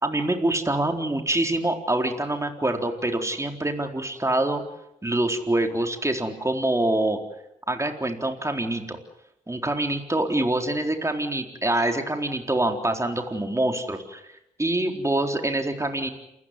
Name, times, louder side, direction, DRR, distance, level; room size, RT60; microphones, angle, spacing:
voice 1, 0.0-4.6 5.0-7.2 7.7-9.0 9.5-14.2 14.6-16.1, right 1 dB, 20° right, 4 dB, 4.2 m, -25 dB
28.5 x 15.0 x 9.8 m, 0.81 s
supercardioid pair, 40°, 16 cm